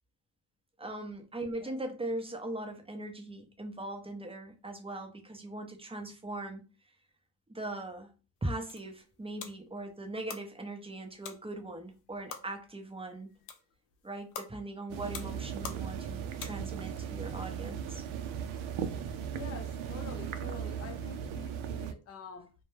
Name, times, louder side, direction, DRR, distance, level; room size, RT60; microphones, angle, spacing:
voice 1, 0.8-6.6 7.5-8.1 8.4-13.3 14.0-18.0, right 1 dB, 10° right, 0.6 m, -40 dB
sound 1, 8.4-17.0, left 7 dB, 90° left, 0.6 m, -48 dB
sound 2, 14.9-21.9, right 8 dB, 70° right, 0.5 m, -37 dB
voice 2, 19.3-22.5, left 5 dB, 30° left, 0.5 m, -47 dB
2.2 x 2.2 x 3.1 m
supercardioid pair, 60°, 49 cm